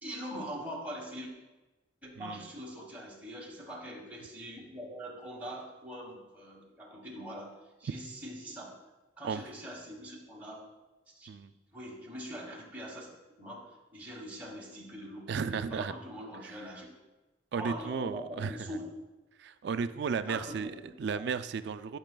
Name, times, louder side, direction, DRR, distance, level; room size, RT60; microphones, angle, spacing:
voice 1, 0.0-1.3 2.0-7.5 7.8-8.8 9.2-10.7 11.1-11.3 11.7-13.1 13.4-16.9 17.6-18.9 20.3-21.2, equal, 10° right, -3 dB, 1.2 m, -43 dB
voice 2, 2.2-2.5 9.2-9.4 11.3-11.5 15.3-15.9 16.4-16.6 17.5-18.8 19.4-20.7 21.0-22.0, right 5 dB, 60° right, 12 dB, 0.3 m, -34 dB
12.0 x 6.0 x 2.2 m, 1.1 s
head